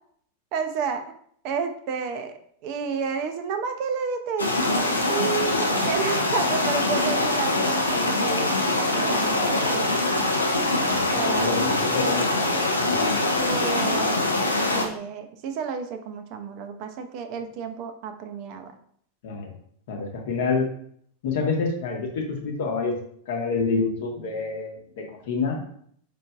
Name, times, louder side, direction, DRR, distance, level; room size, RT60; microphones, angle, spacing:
voice 1, 0.5-1.0 1.4-10.0 11.1-11.6 13.4-14.3 14.7-18.8, right 6 dB, 45° right, 7 dB, 0.4 m, -31 dB
sound 1, 4.4-14.9, left 2 dB, 80° left, 0.4 m, -23 dB
voice 2, 10.8-13.1 19.2-19.5 19.9-20.7 21.2-23.0 23.3-25.6, left 4 dB, 55° left, 1 dB, 0.8 m, -28 dB
4.4 x 2.5 x 2.3 m, 0.63 s
figure-of-eight pair, 90°, 0 cm